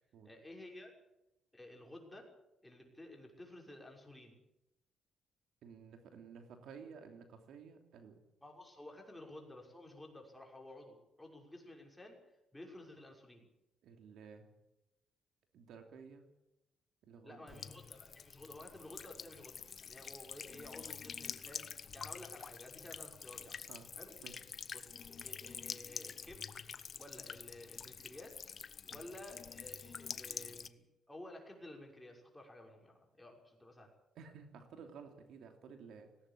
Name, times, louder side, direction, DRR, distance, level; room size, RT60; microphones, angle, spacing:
voice 1, 0.2-0.9 1.5-2.3 2.6-4.4 8.4-12.2 12.5-13.5 17.2-23.6 24.0-24.1 24.7-26.5 27.0-28.4 28.8-33.9, left 1 dB, 10° left, 0 dB, 6.2 m, -53 dB
voice 2, 5.6-8.2 13.8-14.5 15.5-16.2 17.0-17.6 23.7-23.9 24.2-24.4 28.9-29.1 34.1-36.1, right 6 dB, 80° right, 5 dB, 2.9 m, -54 dB
Buzz / Water tap faucet / Trickle dribble, 17.5-30.7, left 6 dB, 50° left, 1.1 m, -47 dB
19.0 x 17.5 x 8.6 m, 0.91 s
cardioid pair, 90°, 0 cm